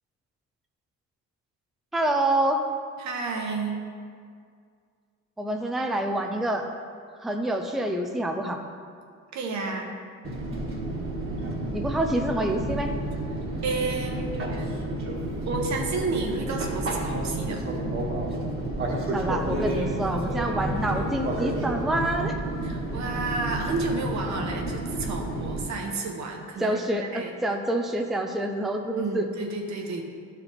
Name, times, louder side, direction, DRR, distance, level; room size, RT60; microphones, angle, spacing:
voice 1, 1.9-2.6 5.4-6.7 7.2-8.6 11.7-12.9 19.1-22.4 26.6-29.3, right 1 dB, ahead, 3 dB, 0.5 m, -27 dB
voice 2, 3.0-3.9 9.3-9.9 13.6-14.2 14.5-14.7 15.4-17.6 22.6-27.3 29.0-30.0, right 3 dB, 65° right, 1 dB, 1.2 m, -31 dB
Fixed-wing aircraft airplane, 10.2-25.6, right 1 dB, 45° right, 1.5 m, -30 dB
11.0 x 4.8 x 3.5 m, 2.2 s
cardioid pair, 90°, 30 cm